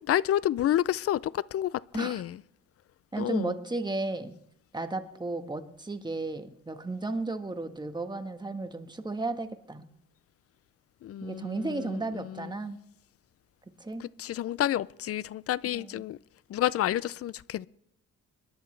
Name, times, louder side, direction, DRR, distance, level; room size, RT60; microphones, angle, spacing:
voice 1, 0.1-2.4 3.2-3.5 11.0-12.5 14.0-16.2 16.5-17.7, left 12 dB, 50° left, 0.5 m, -30 dB
voice 2, 3.1-4.4 4.7-9.9 11.2-12.8 13.8-14.0 15.7-16.0, right 2 dB, 15° right, 1.4 m, -34 dB
26.0 x 11.0 x 3.3 m
cardioid pair, 90°, 30 cm